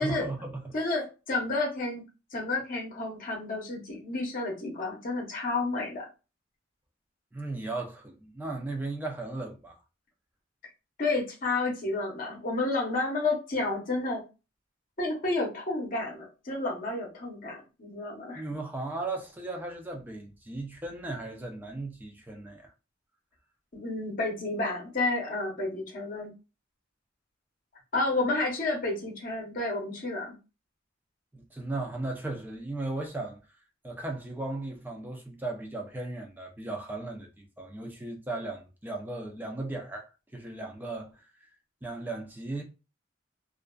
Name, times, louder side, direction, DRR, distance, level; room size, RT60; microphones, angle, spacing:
voice 1, 0.0-0.7 7.3-9.8 18.4-22.7 31.3-33.4 33.8-40.1 40.3-41.5 41.8-42.6, right 2 dB, 10° right, 0.4 m, -36 dB
voice 2, 0.7-2.0 2.3-6.1 11.0-14.2 15.0-18.5 23.7-26.3 27.9-30.3, left 2 dB, 45° left, 0.8 m, -30 dB
2.5 x 2.3 x 2.2 m
head